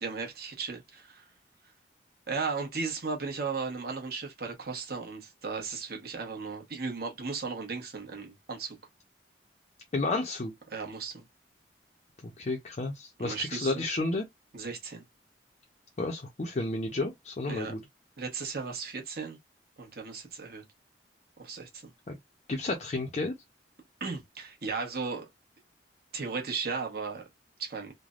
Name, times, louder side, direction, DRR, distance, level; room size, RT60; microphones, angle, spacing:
voice 1, 0.0-1.3 2.3-8.8 10.7-11.2 13.2-13.8 14.5-15.0 17.5-17.7 18.2-19.4 19.8-20.6 21.4-21.9 24.0-25.3 26.1-27.3 27.6-27.9, right 4 dB, 60° right, 1.0 m, -36 dB
voice 2, 9.9-10.5 12.2-14.2 16.0-17.8 22.1-22.2 22.5-23.3, left 2 dB, 40° left, 0.5 m, -31 dB
3.3 x 2.1 x 2.4 m
head